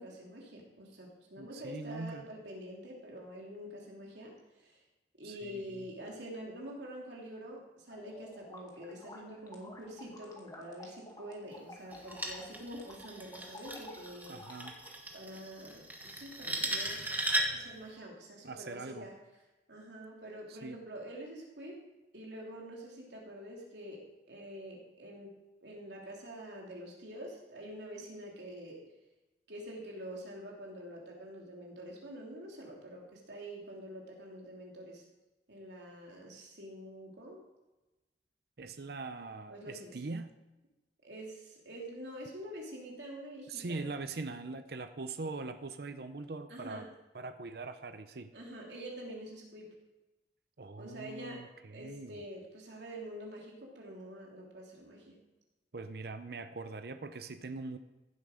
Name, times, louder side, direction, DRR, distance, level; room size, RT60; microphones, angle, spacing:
voice 1, 0.0-4.8 5.2-14.4 15.1-17.1 17.5-19.4 19.7-21.8 22.1-25.3 25.6-28.8 29.5-35.0 35.5-37.4 39.5-40.0 41.0-43.9 46.5-46.8 48.3-49.8 50.8-55.2, equal, 80° right, -2 dB, 3.1 m, -46 dB
voice 2, 1.4-2.3 5.2-5.9 14.3-14.8 18.4-19.1 20.5-20.8 38.6-40.3 43.5-46.9 47.1-48.3 50.6-52.3 55.7-57.8, right 3 dB, 60° right, 9 dB, 0.7 m, -42 dB
sound 1, 7.9-14.9, left 2 dB, 20° left, 2.0 m, -52 dB
sound 2, 11.9-17.7, right 1 dB, 10° right, 1.4 m, -37 dB
15.5 x 7.8 x 5.0 m, 1.1 s
head